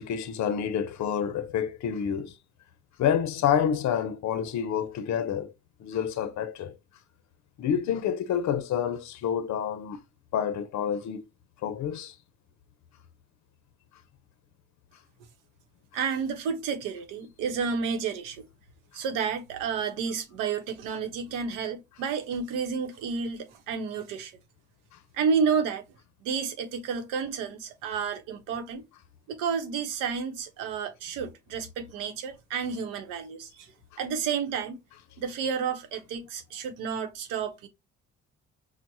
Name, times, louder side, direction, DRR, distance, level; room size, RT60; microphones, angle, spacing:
voice 1, 0.0-2.3 3.0-5.5 5.8-6.8 7.6-10.0 10.3-11.3 11.6-12.1 24.9-25.0, left 8 dB, 60° left, 0.6 m, -28 dB
voice 2, 15.9-18.5 18.9-24.3 25.1-25.8 26.2-28.8 29.3-33.7 34.0-34.8 35.2-37.7, right 6 dB, 85° right, 0.7 m, -31 dB
4.5 x 2.0 x 2.6 m
supercardioid pair, 55°, 31 cm